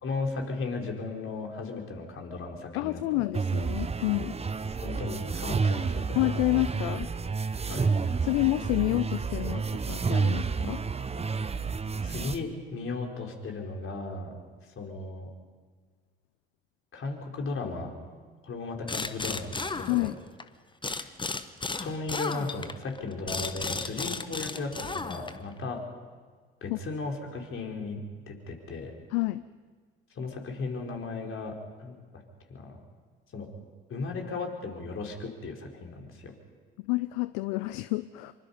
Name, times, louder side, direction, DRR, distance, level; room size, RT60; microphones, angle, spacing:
voice 1, 0.0-3.2 4.8-6.2 7.7-7.9 12.0-14.4 14.8-15.3 16.9-17.9 18.4-20.1 20.9-21.1 21.8-25.8 26.6-28.9 30.1-32.0 32.5-32.8 33.3-33.5 33.9-36.3, left 3 dB, 45° left, 1 dB, 4.5 m, -36 dB
voice 2, 2.7-4.3 6.2-7.1 8.2-10.8 19.9-20.2 26.7-26.8 29.1-29.4 36.8-38.3, left 20 dB, 65° left, 15 dB, 0.6 m, -29 dB
sound 1, 3.3-12.4, right 5 dB, 20° right, 1.0 m, -30 dB
sound 2, 18.9-20.4 20.8-25.5, left 3 dB, 15° left, 1.1 m, -34 dB
26.0 x 23.5 x 5.5 m, 1.5 s
hypercardioid pair, 60°, 30 cm